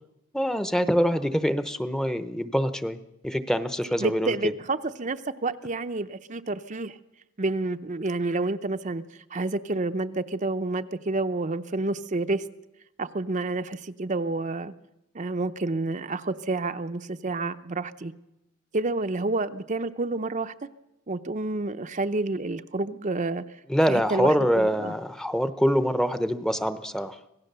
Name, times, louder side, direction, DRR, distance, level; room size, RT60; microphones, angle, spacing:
voice 1, 0.3-4.3 23.7-27.2, equal, 5° left, 12 dB, 0.8 m, -25 dB
voice 2, 4.0-7.0 7.4-9.0 9.3-12.4 13.0-14.7 15.1-18.1 18.7-20.5 21.1-23.4 23.9-24.9, right 2 dB, 40° right, 9 dB, 0.7 m, -29 dB
25.5 x 17.5 x 6.8 m, 0.91 s
head